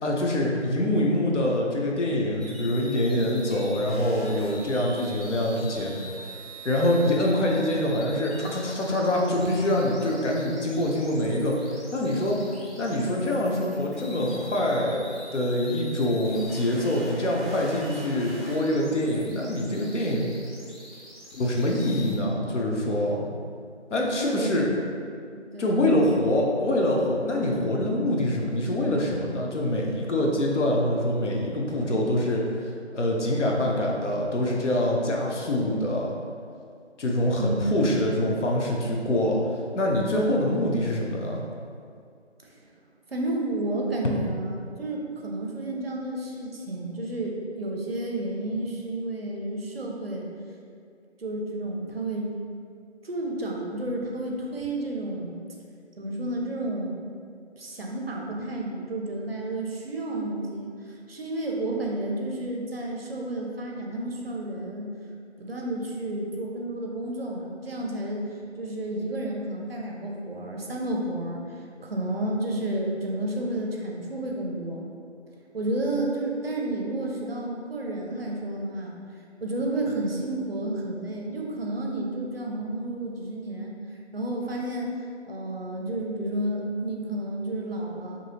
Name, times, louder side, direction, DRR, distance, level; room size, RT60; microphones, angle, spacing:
voice 1, 0.0-5.9 6.6-12.4 12.8-15.0 15.3-20.3 21.3-23.2 23.9-24.7 25.6-36.1 37.0-39.4 39.7-41.4 44.0-44.1, left 1 dB, 80° left, -2 dB, 0.6 m, -25 dB
sound 1, 2.4-22.1, equal, ahead, 0.4 m, -44 dB
voice 2, 24.1-24.5 25.5-25.9 37.4-37.6 38.3-38.4 43.1-50.2 51.2-52.3 53.0-55.4 56.0-56.9 57.6-60.7 61.1-64.9 65.4-71.4 71.8-74.8 75.5-79.0 79.4-83.7 84.1-85.0 85.3-88.2, right 1 dB, 55° right, -1 dB, 0.5 m, -31 dB
2.7 x 2.6 x 2.8 m, 2.2 s
figure-of-eight pair, 175°, 35 cm